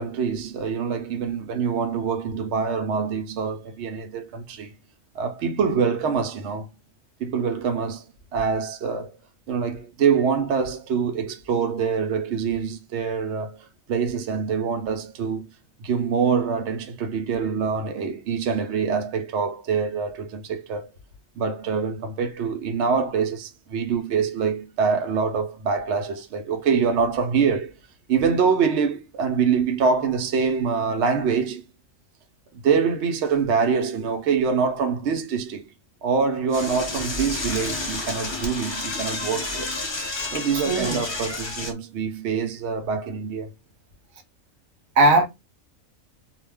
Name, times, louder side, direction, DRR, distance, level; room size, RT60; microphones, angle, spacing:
voice 1, 0.0-4.7 5.1-6.7 7.2-8.0 8.3-9.1 9.5-15.5 15.8-20.9 21.4-27.7 28.1-31.6 32.5-35.6 36.0-39.7 40.3-43.5, right 6 dB, 65° right, 0.9 m, -25 dB
Door / Toilet flush, 36.5-41.7, left 2 dB, 30° left, 0.5 m, -30 dB
voice 2, 40.7-41.0 45.0-45.3, right 2 dB, 85° right, 1.1 m, -18 dB
2.4 x 2.1 x 3.2 m
omnidirectional pair, 1.4 m